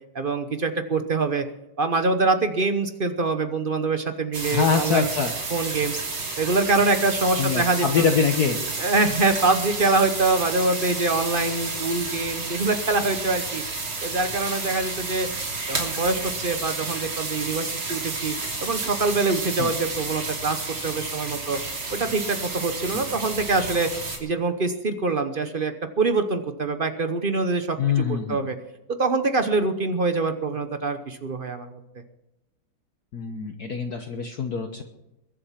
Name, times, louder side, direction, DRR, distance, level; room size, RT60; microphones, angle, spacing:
voice 1, 0.1-1.4 1.8-5.1 5.5-6.0 6.4-8.0 8.8-13.6 14.0-15.3 15.7-18.3 18.6-21.6 21.9-23.9 24.2-28.6 28.9-31.8, right 3 dB, 50° right, 8 dB, 0.6 m, -24 dB
sound 1, 4.3-24.2, right 3 dB, 70° right, 3.8 m, -31 dB
voice 2, 4.5-5.3 7.4-8.6 19.6-19.7 22.9-23.0 27.8-28.4 33.1-34.8, left 6 dB, 50° left, 4 dB, 1.4 m, -24 dB
22.5 x 7.8 x 5.8 m, 0.93 s
omnidirectional pair, 2.4 m